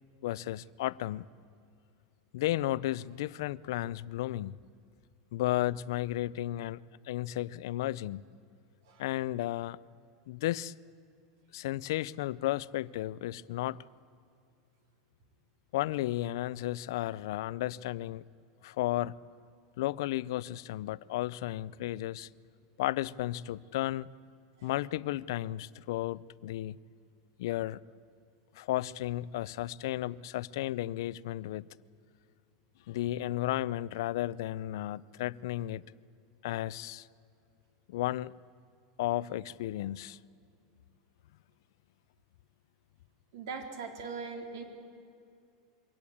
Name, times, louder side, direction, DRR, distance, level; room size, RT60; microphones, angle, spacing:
voice 1, 0.2-1.3 2.3-4.6 5.3-6.8 7.1-8.2 9.0-9.8 10.3-10.7 11.5-13.8 15.7-18.2 18.6-19.1 19.8-22.3 22.8-24.1 24.6-26.8 27.4-27.8 28.6-31.7 32.9-35.8 36.4-37.1 37.9-38.3 39.0-40.2, left 15 dB, 65° left, 0.4 m, -33 dB
voice 2, 43.3-44.6, right 5 dB, 70° right, 3.3 m, -40 dB
23.0 x 17.5 x 8.6 m
supercardioid pair, 175°, 2 cm